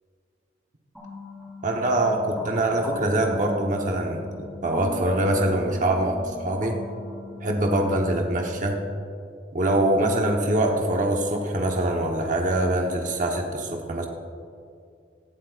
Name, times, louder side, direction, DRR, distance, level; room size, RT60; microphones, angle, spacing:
sound 1, 0.9-8.5, left 1 dB, ahead, 3.2 m, -41 dB
voice 1, 1.6-6.8 7.4-8.8 9.5-14.1, right 1 dB, 45° right, 1 dB, 1.0 m, -24 dB
17.5 x 11.5 x 2.5 m, 2.4 s
head